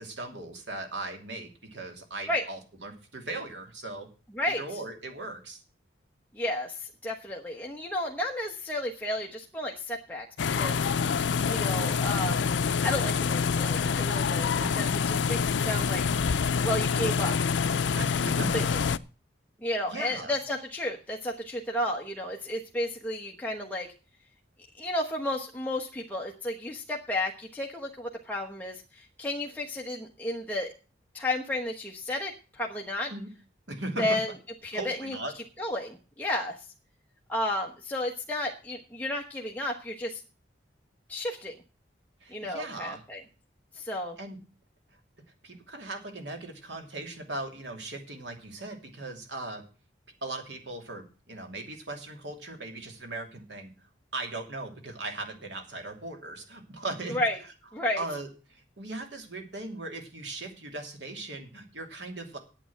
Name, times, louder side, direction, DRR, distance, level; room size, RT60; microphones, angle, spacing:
voice 1, 0.0-4.1 4.5-5.6 14.5-14.8 18.0-18.5 19.9-20.4 33.1-33.3 33.7-34.2 34.7-35.3 42.2-43.0 44.2-44.4 45.4-49.6 50.2-53.7 54.1-57.2 58.0-62.4, right 2 dB, 75° right, 4 dB, 2.7 m, -38 dB
voice 2, 6.3-10.3 10.5-10.8 11.4-12.5 12.8-16.3 16.6-17.3 18.4-18.8 19.6-23.9 24.7-30.7 31.1-33.1 34.0-34.3 34.6-35.1 35.6-36.6 37.3-40.2 41.1-41.5 42.3-43.2 43.7-44.2 57.1-57.4 57.7-58.0, left 1 dB, 10° left, -1 dB, 1.2 m, -32 dB
sound 1, 10.4-19.0, left 6 dB, 80° left, 0.5 m, -26 dB
9.0 x 8.6 x 7.2 m, 0.35 s
head